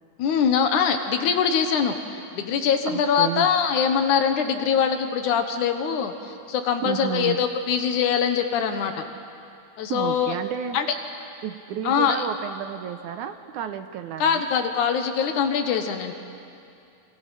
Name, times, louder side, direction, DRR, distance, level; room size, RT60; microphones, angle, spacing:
voice 1, 0.2-9.1 9.8-10.4 10.7-10.9 11.8-12.2 14.2-16.1, left 7 dB, 70° left, 6 dB, 2.6 m, -23 dB
voice 2, 2.9-3.5 6.8-7.4 9.9-10.8 11.4-14.4, right 10 dB, 75° right, 9 dB, 2.1 m, -31 dB
28.0 x 25.5 x 5.8 m, 2.5 s
omnidirectional pair, 3.8 m